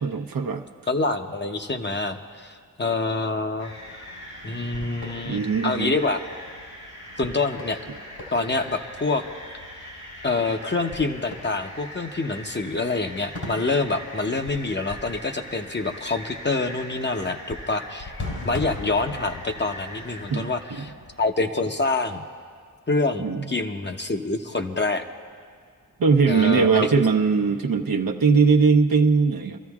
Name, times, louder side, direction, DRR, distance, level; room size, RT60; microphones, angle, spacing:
voice 1, 0.0-0.6 5.2-6.0 20.3-20.8 23.2-23.5 26.0-29.6, right 5 dB, 75° right, 4 dB, 0.9 m, -20 dB
voice 2, 0.9-3.7 4.4-6.2 7.2-7.8 8.3-9.2 10.2-18.1 18.4-20.9 21.2-22.2 22.9-25.0 26.3-27.0, left 3 dB, 30° left, 5 dB, 0.8 m, -26 dB
sound 1, 3.6-21.3, left 1 dB, 75° left, 3.4 m, -39 dB
27.0 x 13.5 x 2.4 m, 2.1 s
cardioid pair, 50°, 36 cm